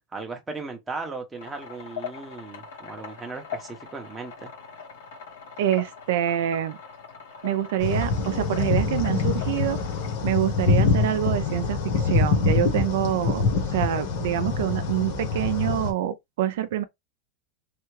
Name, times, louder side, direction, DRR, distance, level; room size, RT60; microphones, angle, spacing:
voice 1, 0.1-4.5, right 3 dB, 10° right, 0.7 m, -37 dB
sound 1, 1.4-10.1, left 6 dB, 85° left, 1.7 m, -41 dB
voice 2, 5.6-6.8 7.4-9.8 10.2-13.4 13.7-16.8, right 12 dB, 65° right, 0.4 m, -26 dB
sound 2, 7.8-15.9, left 4 dB, 55° left, 1.2 m, -25 dB
3.3 x 2.3 x 3.1 m
supercardioid pair, 175°, 0 cm